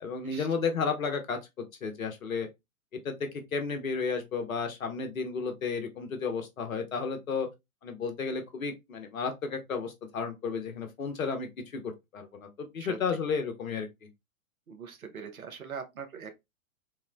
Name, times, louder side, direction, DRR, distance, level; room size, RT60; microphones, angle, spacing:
voice 1, 0.0-1.4 1.8-2.5 3.0-7.5 7.8-13.9, left 5 dB, 70° left, 0.8 m, -33 dB
voice 2, 14.7-16.3, right 6 dB, 80° right, 0.7 m, -41 dB
3.0 x 2.0 x 2.3 m
figure-of-eight pair, 110°, 42 cm